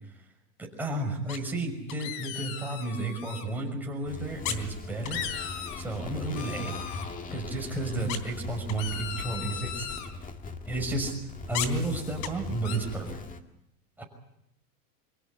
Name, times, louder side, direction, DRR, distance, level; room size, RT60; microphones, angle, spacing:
voice 1, 0.6-5.2 5.8-6.7 7.3-9.9 10.7-11.2 11.5-13.2 14.0-14.1, right 2 dB, 5° right, 0 dB, 5.9 m, -32 dB
sound 1, 1.3-1.6 1.9-3.4 4.4-4.6 4.9-5.8 6.3-7.0 8.1-10.1 11.5-12.3 12.6-12.8, left 9 dB, 50° left, 3.4 m, -36 dB
sound 2, 4.0-13.4, left 3 dB, 15° left, 1.9 m, -40 dB
25.5 x 16.5 x 9.6 m, 0.83 s
supercardioid pair, 130°, 46 cm